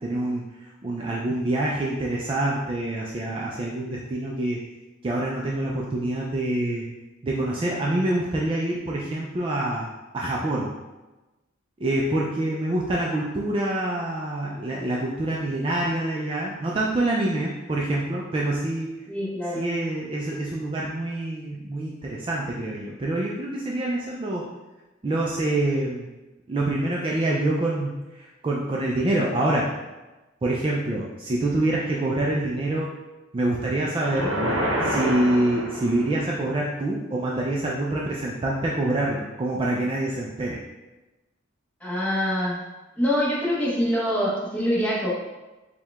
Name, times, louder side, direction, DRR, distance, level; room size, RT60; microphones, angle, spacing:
voice 1, 0.0-4.6 5.0-6.9 7.2-9.9 10.1-10.7 11.8-18.9 19.5-24.5 25.0-26.1 26.5-29.7 30.4-32.9 33.3-34.3 34.8-40.6, right 1 dB, 25° right, -3 dB, 0.3 m, -26 dB
voice 2, 19.1-19.7 41.8-42.6 43.0-45.1, equal, 5° left, -7 dB, 0.9 m, -25 dB
sound 1, 33.9-36.3, equal, 80° right, 0.7 m, -27 dB
4.6 x 2.2 x 3.4 m, 1.1 s
head